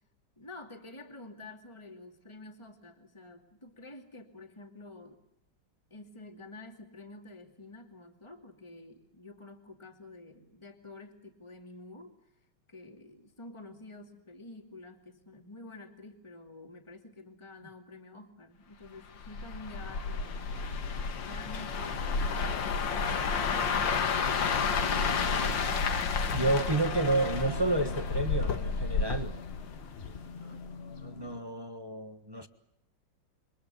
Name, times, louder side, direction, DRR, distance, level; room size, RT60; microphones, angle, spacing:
voice 1, 0.4-5.2 5.9-12.2 12.7-20.8 21.2-25.9 30.2-30.6, left 2 dB, 15° left, 2.5 m, -49 dB
sound 1, 19.2-30.3 30.7-31.0, left 5 dB, 65° left, 2.2 m, -31 dB
sound 2, 19.7-31.4, left 4 dB, 35° left, 1.2 m, -47 dB
voice 2, 26.3-29.4 31.0-32.5, right 2 dB, 15° right, 1.2 m, -30 dB
28.5 x 25.0 x 7.1 m
omnidirectional pair, 2.2 m